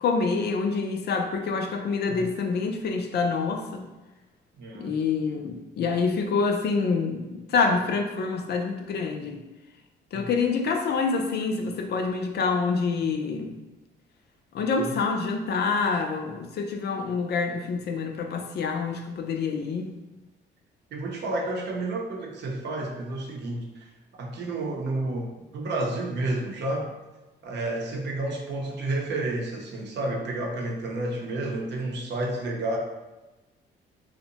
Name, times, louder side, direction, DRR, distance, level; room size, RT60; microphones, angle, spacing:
voice 1, 0.0-3.8 4.8-9.4 10.1-13.5 14.5-19.9, left 4 dB, 55° left, 4 dB, 0.4 m, -26 dB
voice 2, 4.6-5.0 10.1-10.3 14.8-15.0 20.9-23.9 24.2-26.9 27.4-32.8, right 2 dB, 60° right, 0 dB, 0.6 m, -30 dB
2.6 x 2.1 x 2.8 m, 1.1 s
cardioid pair, 90°, 20 cm